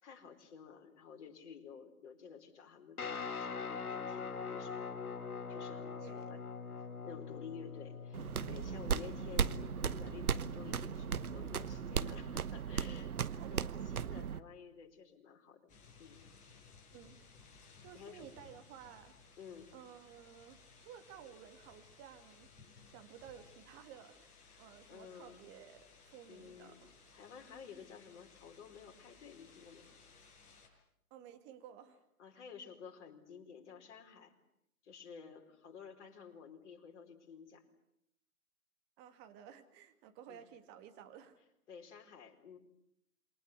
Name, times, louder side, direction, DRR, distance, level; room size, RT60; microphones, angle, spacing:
voice 1, 0.0-4.8 5.5-6.4 6.7-15.7 16.0-16.2 17.9-18.3 19.4-19.7 24.5-25.5 26.3-26.8 27.1-29.9 32.2-34.3 34.8-37.6 40.3-40.4 41.7-42.6, left 6 dB, 50° left, 2 dB, 4.7 m, -52 dB
Guitar, 3.0-12.4, left 5 dB, 75° left, 3.4 m, -44 dB
voice 2, 6.0-6.4 13.4-13.9 16.9-17.2 17.8-19.1 19.7-22.5 22.9-26.9 31.1-32.0 39.0-41.4, right 9 dB, 25° right, 8 dB, 2.3 m, -55 dB
sound 1, 8.1-14.4, right 7 dB, 75° right, 1.2 m, -37 dB
sound 2, 15.7-30.7, left 5 dB, 15° left, 6.2 m, -61 dB
28.0 x 22.5 x 8.2 m, 0.78 s
figure-of-eight pair, 135°, 44 cm